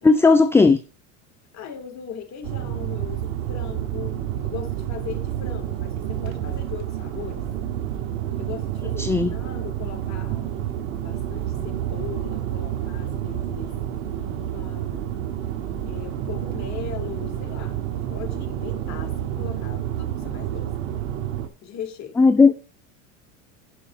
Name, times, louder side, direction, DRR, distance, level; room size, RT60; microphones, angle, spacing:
voice 1, 0.0-0.8 9.0-9.3 22.2-22.6, left 4 dB, 5° left, 0.4 m, -15 dB
voice 2, 1.5-4.2 4.4-7.5 8.4-10.5 11.0-13.8 14.3-15.3 15.9-17.8 18.1-20.7 21.6-22.2, left 8 dB, 40° left, 3.1 m, -38 dB
sound 1, 2.4-21.5, right 11 dB, 75° right, 1.9 m, -29 dB
11.0 x 5.2 x 5.6 m
supercardioid pair, 105°, 40 cm